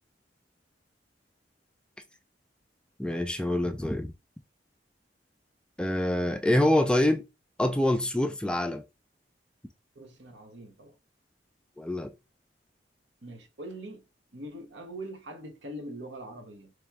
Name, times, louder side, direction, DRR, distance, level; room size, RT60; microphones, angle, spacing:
voice 1, 3.0-4.1 5.8-7.2 7.6-8.8 11.8-12.1, left 1 dB, 5° left, 0.3 m, -25 dB
voice 2, 9.9-10.9 13.2-14.0 14.3-16.7, right 1 dB, 80° right, 1.0 m, -42 dB
3.4 x 3.1 x 3.4 m
head